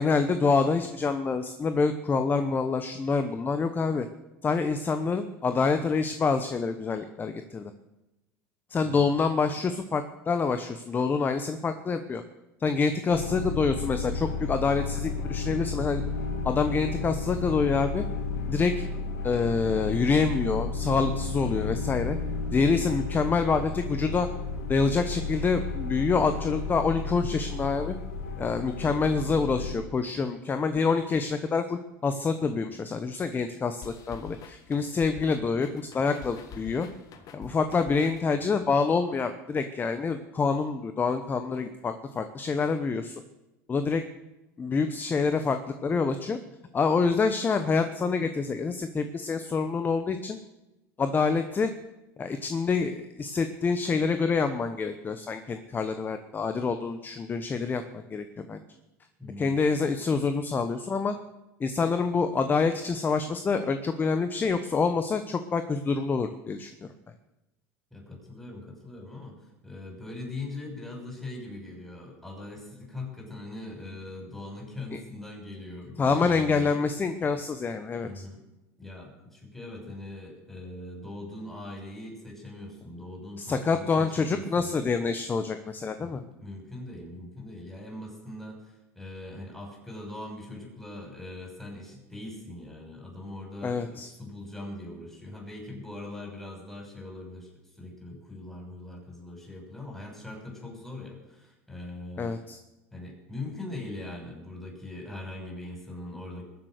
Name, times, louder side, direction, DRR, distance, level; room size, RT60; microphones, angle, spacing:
voice 1, 0.0-4.1 4.4-7.7 8.7-12.2 12.6-16.0 16.4-18.0 18.5-18.8 19.2-22.2 22.5-24.3 24.7-28.0 28.4-36.9 37.3-43.2 43.7-44.0 44.6-46.4 46.7-50.4 51.0-51.7 52.2-58.6 59.4-61.2 61.6-66.9 74.9-75.0 76.0-78.2 83.4-86.2 93.6-94.1 102.2-102.6, left 4 dB, 25° left, 9 dB, 1.0 m, -27 dB
sound 1, 13.1-29.7, left 4 dB, 85° left, 2.4 m, -33 dB
sound 2, 33.8-38.8, left 5 dB, 50° left, 1.5 m, -46 dB
voice 2, 59.2-59.6 67.9-76.8 78.0-78.4 78.8-84.7 86.0-97.5 97.8-102.3 102.9-106.5, left 2 dB, 5° left, -1 dB, 6.4 m, -41 dB
21.5 x 7.7 x 6.7 m, 0.99 s
supercardioid pair, 105°, 8 cm